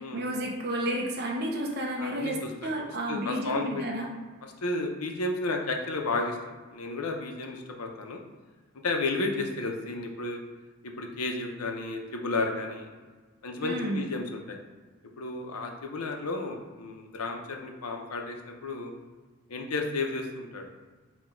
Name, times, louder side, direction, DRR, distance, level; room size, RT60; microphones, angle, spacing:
voice 1, 0.0-4.1 13.6-14.0, right 1 dB, 45° right, -1 dB, 0.6 m, -31 dB
voice 2, 2.0-2.5 3.1-3.9 4.4-8.2 8.8-10.4 10.8-12.9 13.4-14.6 15.2-18.9 19.5-20.6, left 2 dB, 90° left, 3 dB, 0.6 m, -32 dB
4.2 x 2.2 x 4.4 m, 1.4 s
head